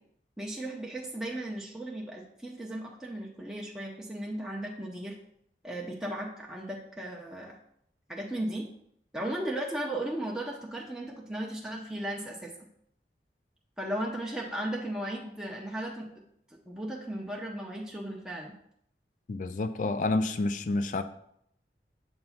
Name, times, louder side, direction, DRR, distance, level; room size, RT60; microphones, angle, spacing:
voice 1, 0.4-5.2 5.6-7.6 8.1-8.7 9.1-12.7 13.8-16.2 16.7-18.5, right 1 dB, 5° right, -3 dB, 0.6 m, -36 dB
voice 2, 19.3-21.0, left 2 dB, 45° left, 11 dB, 0.3 m, -29 dB
6.9 x 2.6 x 5.5 m, 0.70 s
head